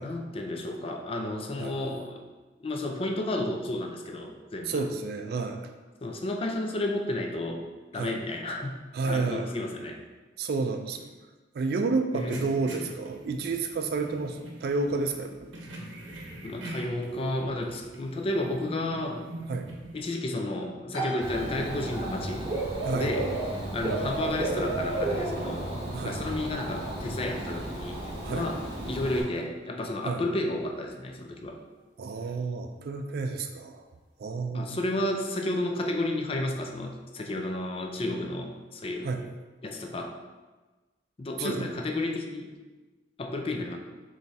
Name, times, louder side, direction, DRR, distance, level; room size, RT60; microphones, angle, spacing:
voice 1, 0.0-2.2 2.6-4.8 6.0-7.7 7.9-10.0 12.1-12.4 16.4-19.3 19.9-22.5 22.9-23.3 23.7-28.0 28.3-31.6 34.5-39.1 39.6-40.2 41.2-42.5 43.2-43.8, left 1 dB, 30° left, 3 dB, 0.4 m, -32 dB
voice 2, 4.7-5.6 7.9-8.2 8.9-9.5 10.4-11.1 11.5-15.5 19.5-19.7 22.8-23.1 25.9-26.2 28.2-28.5 30.0-30.2 32.0-33.8 34.2-34.8 39.0-39.2 41.4-41.7, right 3 dB, 55° right, 6 dB, 0.3 m, -30 dB
sound 1, 12.1-20.0, right 1 dB, 85° right, 0.7 m, -43 dB
sound 2, 20.9-35.4, right 2 dB, 90° left, 1.0 m, -45 dB
Dog / Bird, 21.2-29.2, right 2 dB, 25° right, 1.0 m, -32 dB
3.4 x 3.1 x 4.1 m, 1.2 s
head